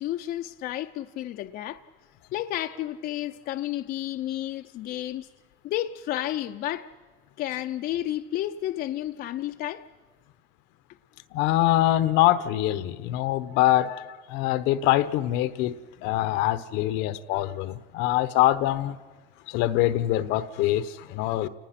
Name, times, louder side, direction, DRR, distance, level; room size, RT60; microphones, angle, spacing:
voice 1, 0.0-1.8 2.3-5.3 5.6-6.9 7.4-9.9, left 13 dB, 50° left, 0.6 m, -31 dB
voice 2, 11.3-19.0 19.5-21.5, left 14 dB, 75° left, 1.0 m, -24 dB
29.5 x 19.5 x 5.9 m
cardioid pair, 140°, 19 cm